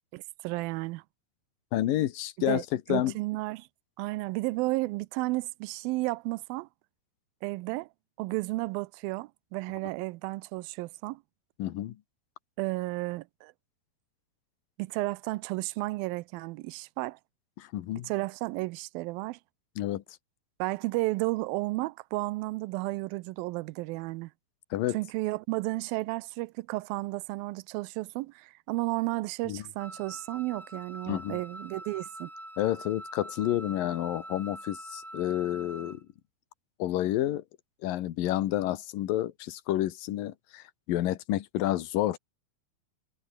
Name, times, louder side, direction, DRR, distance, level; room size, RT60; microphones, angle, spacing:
voice 1, 0.1-1.0 2.4-2.6 2.9-3.7 4.0-6.7 7.4-7.9 8.2-11.2 12.6-13.5 14.8-17.2 18.0-19.4 20.6-24.3 24.9-32.3, right 21 dB, 80° right, 2.3 m, -33 dB
voice 2, 1.7-3.1 11.6-12.0 17.6-18.1 19.8-20.0 24.7-25.0 29.5-29.6 31.1-31.4 32.6-36.0 36.8-37.4 37.8-42.2, left 14 dB, 70° left, 2.9 m, -29 dB
Wind instrument woodwind instrument, 29.8-36.0, right 1 dB, 10° right, 0.8 m, -44 dB
omnidirectional pair, 4.4 m